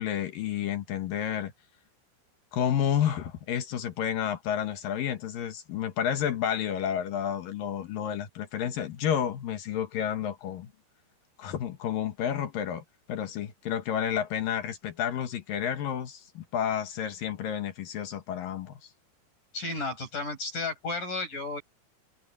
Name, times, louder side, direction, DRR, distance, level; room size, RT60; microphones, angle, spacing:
voice 1, 0.0-1.5 2.5-10.7 11.4-18.9, left 9 dB, 65° left, 2.5 m, -30 dB
voice 2, 19.5-21.6, left 3 dB, 45° left, 8.5 m, -33 dB
omnidirectional pair, 5.2 m